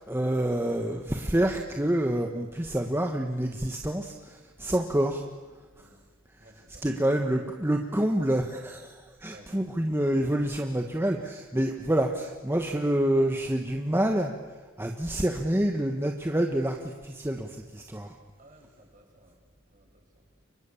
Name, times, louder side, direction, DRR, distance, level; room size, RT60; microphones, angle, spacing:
voice 1, 0.0-5.3 6.8-14.3 14.8-18.1, right 1 dB, 10° right, 3 dB, 1.4 m, -27 dB
voice 2, 6.4-6.8 9.2-9.5 18.4-19.4 19.7-20.3, right 1 dB, 40° right, 0 dB, 7.9 m, -56 dB
29.5 x 24.5 x 7.2 m, 1.4 s
head